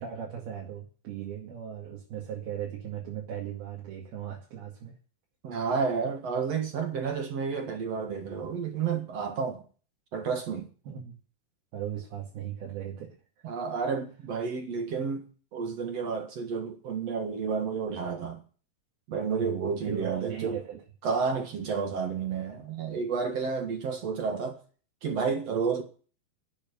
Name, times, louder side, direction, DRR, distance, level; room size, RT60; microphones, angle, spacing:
voice 1, 0.0-4.9 10.9-11.2 11.7-13.1 19.4-20.8, right 9 dB, 75° right, 4.2 m, -38 dB
voice 2, 5.4-9.6 10.1-10.7 13.4-18.4 19.1-20.6 21.0-24.6 25.0-25.8, right 5 dB, 50° right, 2.3 m, -31 dB
11.5 x 8.1 x 9.5 m
omnidirectional pair, 4.4 m